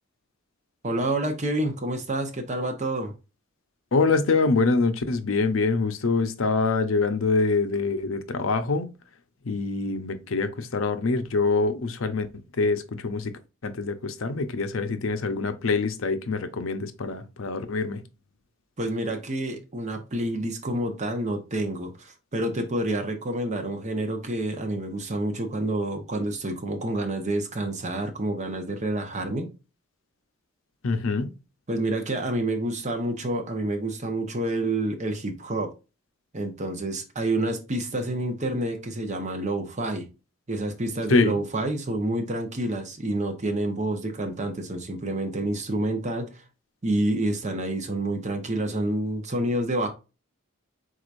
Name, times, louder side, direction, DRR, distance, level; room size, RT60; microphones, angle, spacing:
voice 1, 0.8-3.1 18.8-29.5 31.7-35.7 36.3-40.1 40.5-46.4 46.8-49.9, right 1 dB, 35° right, 1.0 m, -28 dB
voice 2, 3.9-8.9 9.4-12.3 12.5-18.0 30.8-31.3 41.1-41.3, left 3 dB, 80° left, 0.6 m, -25 dB
4.7 x 4.0 x 2.6 m
head